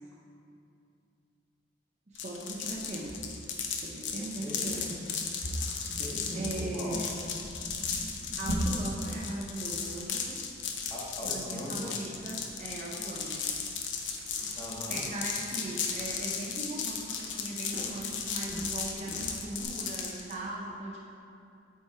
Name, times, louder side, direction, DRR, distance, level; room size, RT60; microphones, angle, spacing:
sound 1, 2.1-20.3, left 6 dB, 70° left, 0.7 m, -35 dB
voice 1, 2.1-3.3 3.8-4.8 6.3-7.1 8.4-10.4 11.2-13.5 14.9-21.1, right 2 dB, 35° right, -2 dB, 0.6 m, -39 dB
sound 2, 2.5-19.6, equal, 55° right, 1.3 m, -42 dB
voice 2, 4.4-4.9 6.0-6.9 10.9-11.9 14.6-15.0, equal, 15° left, -7 dB, 1.4 m, -40 dB
8.2 x 4.7 x 4.3 m, 2.5 s
head